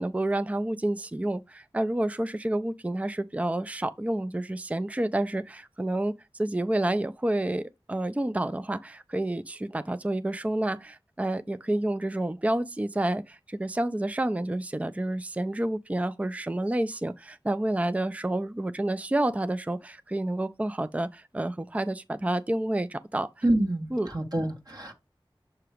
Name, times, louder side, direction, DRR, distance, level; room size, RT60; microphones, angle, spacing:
voice 1, 0.0-23.3 23.9-24.1, right 1 dB, 15° right, 0.4 m, -29 dB
voice 2, 23.4-24.9, right 1 dB, 45° right, 1.5 m, -27 dB
6.7 x 2.9 x 4.9 m
wide cardioid pair, 40°, 9 cm